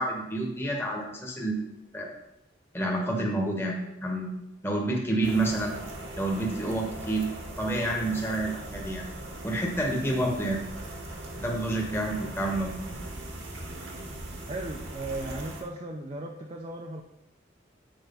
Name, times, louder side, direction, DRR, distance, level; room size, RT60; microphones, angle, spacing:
voice 1, 0.0-2.1 2.7-4.4 4.6-5.7 6.2-7.3 7.6-9.0 9.4-10.6 11.4-12.7, right 1 dB, 10° left, -1 dB, 1.1 m, -29 dB
sound 1, 5.2-15.6, right 1 dB, 80° right, 1.7 m, -40 dB
voice 2, 14.5-17.0, right 2 dB, 30° right, 1 dB, 0.5 m, -36 dB
8.0 x 4.5 x 5.4 m, 0.88 s
head